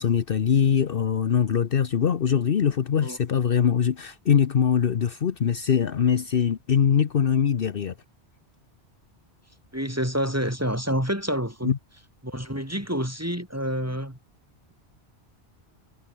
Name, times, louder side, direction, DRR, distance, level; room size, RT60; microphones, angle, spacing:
voice 1, 0.0-7.9 11.6-11.8, left 8 dB, 60° left, 1.0 m, -22 dB
voice 2, 9.7-11.7 12.2-14.2, equal, 15° right, 6.0 m, -28 dB
omnidirectional pair, 1.1 m